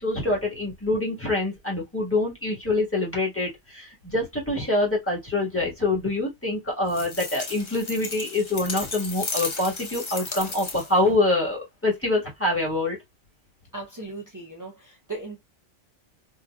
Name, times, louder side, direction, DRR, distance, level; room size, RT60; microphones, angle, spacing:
voice 1, 0.0-13.0, left 2 dB, 10° left, 1.3 m, -25 dB
sound 1, 6.9-11.1, left 3 dB, 35° left, 0.5 m, -34 dB
voice 2, 13.7-15.4, right 3 dB, 25° right, 0.5 m, -37 dB
3.7 x 2.7 x 2.2 m
omnidirectional pair, 1.3 m